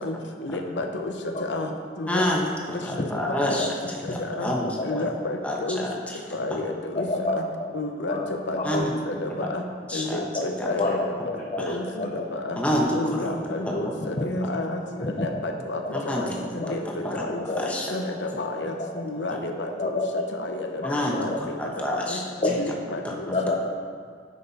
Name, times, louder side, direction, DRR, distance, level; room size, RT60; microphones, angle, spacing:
voice 1, 0.4-1.1 1.4-1.7 2.0-2.3 4.3-4.5 4.8-5.8 6.3-7.1 7.4-7.5 7.7-8.2 8.5-9.6 9.9-11.1 11.6-12.6 12.9-14.8 15.2-15.8 16.2-16.3 16.5-20.0 20.4-20.7 21.2-21.3 21.9-22.2 22.5-23.2, left 2 dB, 85° left, 4 dB, 0.8 m, -31 dB
voice 2, 2.1-2.4 2.7-5.0 5.4-6.2 8.6-8.9 9.9-10.2 10.6-10.9 11.7-11.8 12.6-13.4 13.7-13.8 15.9-16.4 16.8-17.3 17.6-17.9 20.8-22.2 23.0-23.1, left 1 dB, 10° left, -2 dB, 1.0 m, -28 dB
voice 3, 4.6-5.1 6.9-7.7 8.1-8.9 10.3-11.6 12.0-12.2 14.0-14.2 15.0-15.4 15.8-16.7 17.4-17.7 18.8-18.9 19.8-20.3 20.8-21.4 22.4-22.7 23.3-23.6, left 2 dB, 35° left, -1 dB, 0.6 m, -29 dB
9.7 x 5.5 x 4.1 m, 2.1 s
head